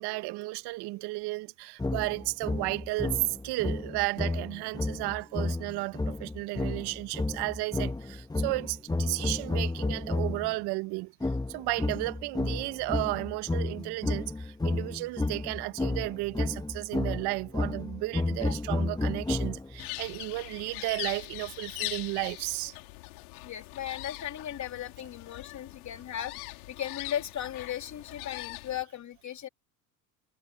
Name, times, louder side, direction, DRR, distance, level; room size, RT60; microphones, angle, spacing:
voice 1, 0.0-22.8, right 22 dB, 55° right, 1.3 m, -33 dB
sound 1, 1.8-10.5 11.2-19.9, left 2 dB, 10° left, 1.4 m, -32 dB
sound 2, 19.8-28.8, left 26 dB, 70° left, 3.8 m, -41 dB
voice 2, 23.4-29.5, left 10 dB, 40° left, 3.0 m, -37 dB
hypercardioid pair, 80°, 45 cm